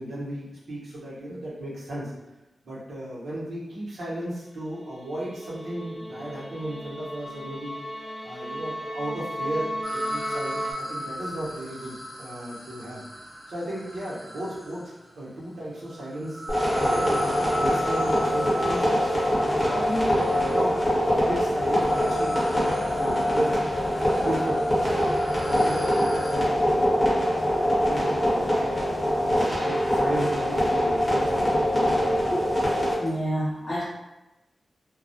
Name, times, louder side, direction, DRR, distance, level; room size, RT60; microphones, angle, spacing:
voice 1, 0.0-2.1 2.6-7.8 8.2-13.0 13.5-19.0 19.4-20.8 21.0-22.4 22.9-23.9 24.1-24.9 25.4-28.8 29.0-32.2, right 1 dB, 90° right, -7 dB, 0.8 m, -35 dB
sound 1, 4.8-10.7, equal, ahead, 0.3 m, -35 dB
sound 2, 9.8-15.0 15.9-26.4, equal, 40° right, 0.8 m, -37 dB
sound 3, 16.5-32.9, equal, 20° left, 1.0 m, -24 dB
voice 2, 33.0-33.8, equal, 45° left, -9 dB, 0.6 m, -28 dB
2.2 x 2.0 x 2.6 m, 1.0 s
wide cardioid pair, 110°, 0 cm